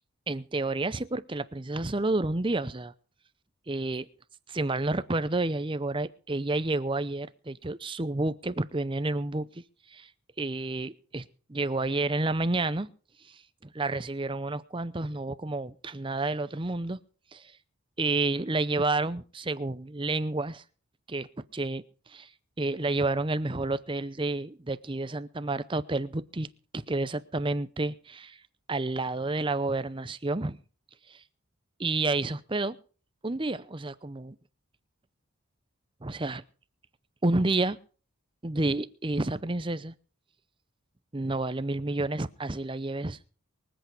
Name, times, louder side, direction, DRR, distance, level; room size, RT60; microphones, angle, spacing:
voice 1, 0.3-2.9 3.7-4.1 4.5-9.6 9.9-10.1 10.4-12.9 13.3-13.4 13.7-17.0 17.3-17.5 18.0-20.6 21.1-21.3 21.5-22.3 22.6-26.5 26.7-28.4 28.7-30.6 31.1-31.2 31.8-32.8 33.2-34.4 36.0-36.4 37.2-37.8 38.4-39.9 41.1-43.2, right 2 dB, 25° right, 14 dB, 0.6 m, -30 dB
24.0 x 8.3 x 5.0 m, 0.39 s
head